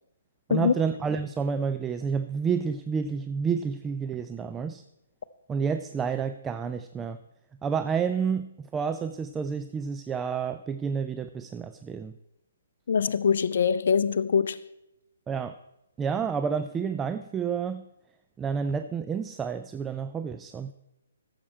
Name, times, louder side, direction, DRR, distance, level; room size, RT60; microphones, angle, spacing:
voice 1, 0.5-4.8 5.5-7.2 7.6-12.1 15.3-15.6 16.0-17.9 18.4-20.7, right 6 dB, 15° right, 0.4 m, -29 dB
voice 2, 12.9-14.6, left 6 dB, 60° left, 0.6 m, -23 dB
14.0 x 7.4 x 4.3 m
figure-of-eight pair, 135°, 0 cm